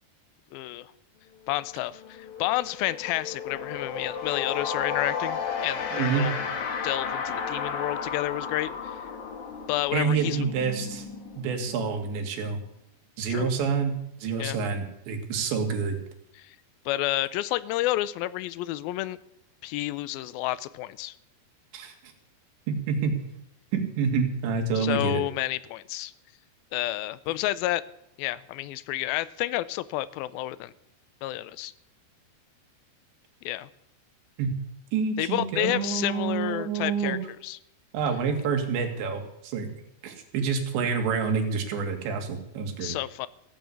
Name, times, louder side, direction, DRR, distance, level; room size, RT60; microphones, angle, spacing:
voice 1, 0.5-0.9 1.5-6.3 6.8-9.1 9.7-10.4 13.3-13.5 14.4-14.6 16.4-16.6 16.9-19.2 19.6-21.2 24.8-26.1 26.7-27.8 28.2-30.7 31.2-31.7 33.5-33.7 35.2-37.6 42.8-43.3, left 16 dB, 85° left, 16 dB, 2.1 m, -30 dB
sound 1, 1.5-1.7 1.9-12.5, left 6 dB, 55° left, 2.6 m, -34 dB
voice 2, 5.9-6.3 9.9-11.1 11.4-12.6 13.2-16.0 21.7-21.9 22.7-23.2 23.7-25.2 34.4-34.6 34.9-37.2 37.9-39.7 40.0-43.0, right 5 dB, 85° right, 4 dB, 4.2 m, -28 dB
16.0 x 9.1 x 8.3 m, 0.78 s
omnidirectional pair, 5.0 m